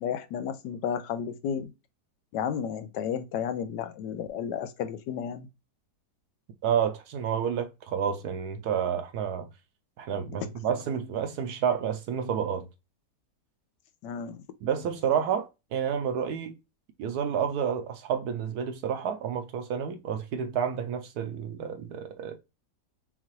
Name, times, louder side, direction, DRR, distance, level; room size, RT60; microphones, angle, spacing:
voice 1, 0.0-1.7 2.3-5.5 14.0-14.4, left 8 dB, 85° left, 1.2 m, -32 dB
voice 2, 6.6-9.5 10.0-12.7 14.6-16.5 17.0-22.4, right 8 dB, 70° right, 1.1 m, -30 dB
5.6 x 2.3 x 3.1 m
omnidirectional pair, 1.9 m